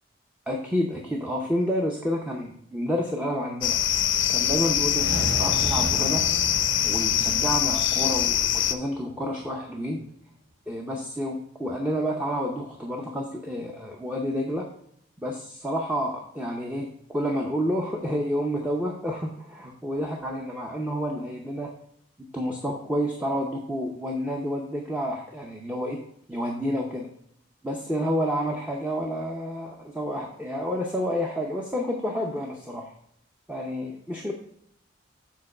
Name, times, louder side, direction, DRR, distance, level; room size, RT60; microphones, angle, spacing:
voice 1, 0.5-3.8 4.3-6.3 6.8-10.0 10.7-14.7 15.2-21.7 22.3-26.0 26.3-27.1 27.6-32.9 33.5-34.3, equal, 5° right, 0 dB, 0.7 m, -29 dB
sound 1, 3.6-8.7, left 10 dB, 75° left, 0.5 m, -24 dB
sound 2, 4.8-9.2, right 1 dB, 90° right, 1.3 m, -35 dB
7.4 x 3.9 x 5.5 m, 0.70 s
head